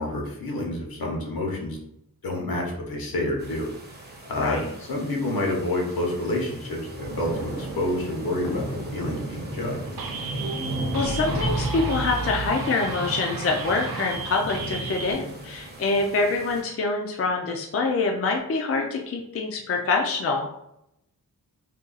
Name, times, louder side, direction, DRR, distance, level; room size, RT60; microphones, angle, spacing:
voice 1, 0.0-1.8 2.2-3.7 4.2-9.8 15.6-15.7, left 1 dB, 75° left, -1 dB, 0.9 m, -28 dB
sound 1, 3.4-16.6, right 1 dB, 25° right, 0.6 m, -35 dB
sound 2, 10.0-15.1, right 5 dB, 70° right, 0.5 m, -36 dB
sound 3, 10.4-12.6, right 2 dB, 50° right, 0.9 m, -33 dB
voice 2, 10.9-20.5, left 3 dB, 40° left, 1 dB, 0.4 m, -25 dB
2.7 x 2.6 x 3.9 m, 0.80 s
wide cardioid pair, 165°, 36 cm